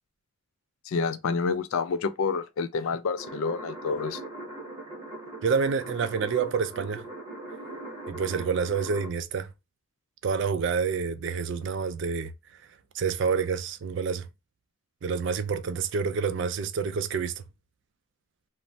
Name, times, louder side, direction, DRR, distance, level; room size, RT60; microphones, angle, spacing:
voice 1, 0.9-4.2, left 5 dB, 80° left, 0.4 m, -28 dB
sound 1, 3.2-9.1, right 2 dB, 25° right, 0.9 m, -40 dB
voice 2, 5.4-7.0 8.1-9.5 10.2-12.3 12.9-14.3 15.0-17.4, right 5 dB, 60° right, 0.4 m, -28 dB
3.1 x 2.0 x 2.6 m
head